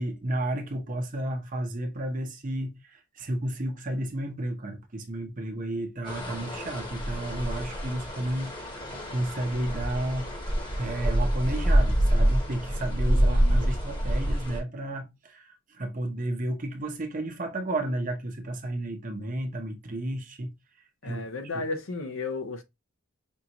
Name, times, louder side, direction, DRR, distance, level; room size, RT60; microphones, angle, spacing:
voice 1, 0.0-8.8 9.1-10.3 10.8-20.5 21.0-21.2 21.5-21.6, right 1 dB, 40° right, 0.8 m, -32 dB
sound 1, 6.0-14.6, equal, 25° left, 1.0 m, -26 dB
voice 2, 13.1-13.6 21.0-22.6, left 3 dB, 70° left, 0.7 m, -34 dB
5.3 x 2.5 x 2.8 m
head